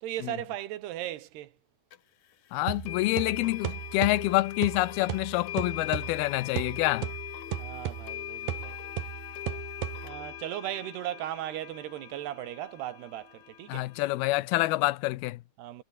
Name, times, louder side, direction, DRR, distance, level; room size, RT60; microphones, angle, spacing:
voice 1, 0.0-1.5 7.6-8.8 10.0-13.9 15.6-15.8, right 13 dB, 90° right, 3.6 m, -37 dB
sound 1, 1.9-2.0 2.9-14.4, left 12 dB, 60° left, 2.2 m, -42 dB
voice 2, 2.5-7.1 13.7-15.4, left 19 dB, 80° left, 2.6 m, -27 dB
sound 2, 2.7-10.4, right 12 dB, 70° right, 3.0 m, -37 dB
omnidirectional pair, 4.6 m